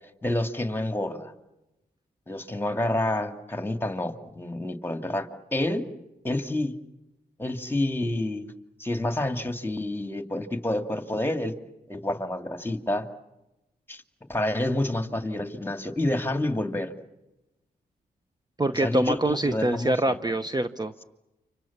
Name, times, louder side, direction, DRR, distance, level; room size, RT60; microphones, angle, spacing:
voice 1, 0.2-1.3 2.3-5.8 6.2-6.7 7.4-8.5 8.8-11.5 11.9-13.0 13.9-14.0 14.3-16.9 18.7-20.2, left 1 dB, 15° left, 6 dB, 2.5 m, -28 dB
voice 2, 18.6-21.0, right 1 dB, 25° right, 10 dB, 1.0 m, -25 dB
29.5 x 26.0 x 7.4 m, 0.98 s
cardioid pair, 60°, 17 cm